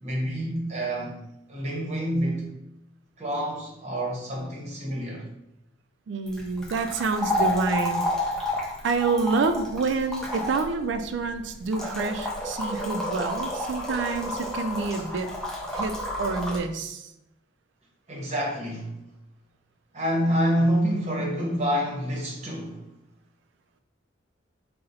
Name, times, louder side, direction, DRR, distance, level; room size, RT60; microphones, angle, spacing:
voice 1, 0.0-1.2 1.5-2.5 3.2-5.3 18.1-19.0 19.9-22.8, equal, 35° right, 0.8 m, -27 dB
voice 2, 6.1-8.1 8.8-15.3 15.7-17.1, right 4 dB, 70° right, 0.3 m, -28 dB
sound 1, 6.3-16.6, left 1 dB, 5° left, 0.6 m, -31 dB
3.8 x 2.1 x 4.1 m
head